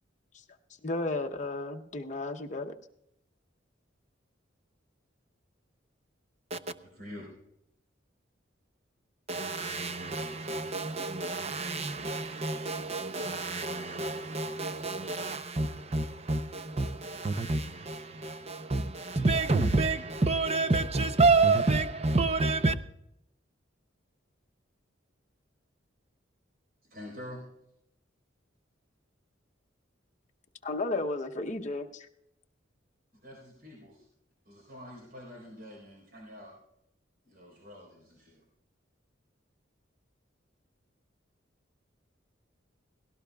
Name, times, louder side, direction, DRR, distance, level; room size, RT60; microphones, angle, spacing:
voice 1, 0.8-2.8 30.6-32.1, left 2 dB, 40° left, 0.8 m, -33 dB
voice 2, 7.0-7.3 26.8-27.5 33.2-34.1 34.5-36.6 37.2-38.4, left 1 dB, 50° right, 4.1 m, -46 dB
voice 3, 9.3-22.8, right 3 dB, 35° right, 0.6 m, -28 dB
17.5 x 17.0 x 2.3 m
head